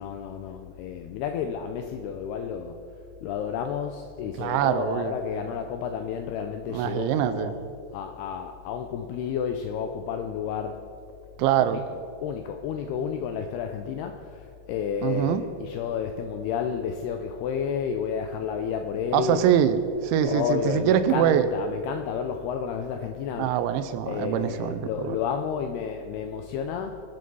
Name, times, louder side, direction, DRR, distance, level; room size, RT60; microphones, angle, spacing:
voice 1, 0.0-2.8 3.2-7.6 7.9-10.8 11.7-11.8 12.2-19.5 20.2-23.5 24.1-27.0, left 7 dB, 85° left, 6 dB, 2.3 m, -31 dB
voice 2, 4.4-5.1 6.7-7.5 11.4-11.8 15.0-15.4 19.1-21.5 23.4-25.2, right 10 dB, 80° right, 10 dB, 3.0 m, -24 dB
23.0 x 8.1 x 5.4 m, 2.5 s
omnidirectional pair, 5.4 m